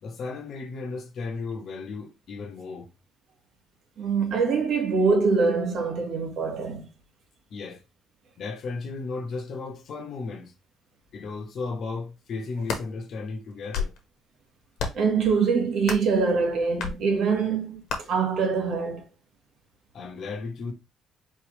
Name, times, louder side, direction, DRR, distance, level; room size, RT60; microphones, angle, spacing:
voice 1, 0.0-2.9 7.5-7.8 8.4-10.5 11.1-13.9 19.9-20.7, left 4 dB, 60° left, 1.0 m, -35 dB
voice 2, 4.0-6.9 14.9-19.0, right 5 dB, 65° right, 1.3 m, -24 dB
sound 1, 12.4-12.9 13.5-14.0 14.8-15.1 15.8-16.1 16.8-17.0 17.9-18.0, left 5 dB, 80° left, 1.2 m, -31 dB
4.3 x 3.2 x 3.1 m
cardioid pair, 85°, 0 cm